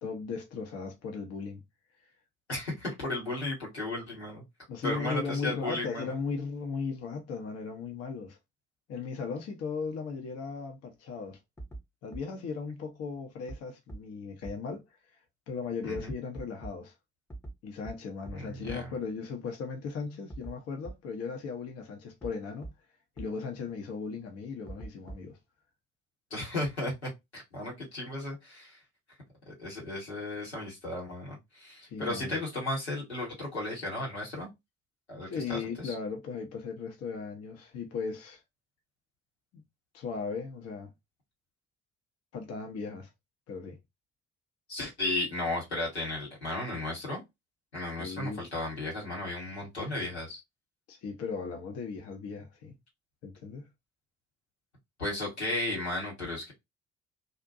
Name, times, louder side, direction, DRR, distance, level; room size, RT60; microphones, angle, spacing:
voice 1, 0.0-1.6 4.7-8.4 8.9-11.4 12.0-14.8 15.5-16.9 17.6-22.7 23.2-25.4 31.9-32.4 35.3-38.4 39.5-39.6 39.9-40.9 42.3-43.1 43.5-43.8 48.0-48.4 50.9-52.7 53.2-53.7, left 5 dB, 50° left, 0.7 m, -37 dB
voice 2, 2.5-4.4 4.8-6.2 15.8-16.1 18.4-18.9 26.3-28.8 29.5-34.5 35.1-35.9 44.7-47.2 47.7-50.4 55.0-56.5, left 2 dB, 90° left, 1.0 m, -35 dB
sound 1, 11.6-11.8 12.1-12.2 13.5-13.6 13.9-14.0 14.4-14.5 15.9-16.7 17.3-17.5 17.8-17.9 18.3-18.4 18.7-18.8 20.3-20.5 20.8-20.9 22.2-22.3 22.6-22.7 23.2-23.3 24.7-25.4, right 2 dB, 10° left, 0.7 m, -41 dB
2.5 x 2.1 x 2.5 m
figure-of-eight pair, 45°, 32 cm